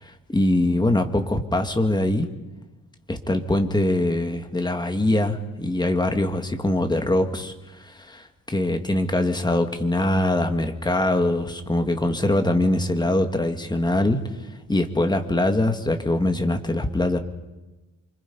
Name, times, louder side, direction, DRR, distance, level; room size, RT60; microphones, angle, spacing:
voice 1, 0.0-2.3 3.1-14.2 14.7-17.2, left 1 dB, 15° left, 6 dB, 1.8 m, -23 dB
28.0 x 25.0 x 5.5 m, 1.1 s
wide cardioid pair, 160°, 34 cm